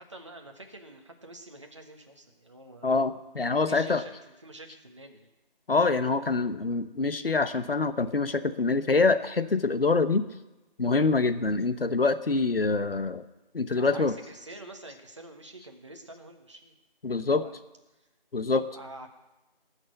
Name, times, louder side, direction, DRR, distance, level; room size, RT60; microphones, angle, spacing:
voice 1, 0.0-3.2 3.6-5.3 13.7-16.7 17.1-17.5 18.6-19.1, right 2 dB, 30° right, 3 dB, 1.3 m, -47 dB
voice 2, 2.8-4.0 5.7-10.3 10.8-13.2 13.5-14.1 17.0-17.4 18.3-18.7, left 3 dB, 70° left, 11 dB, 1.1 m, -25 dB
19.0 x 6.5 x 8.0 m, 1.0 s
figure-of-eight pair, 175°, 30 cm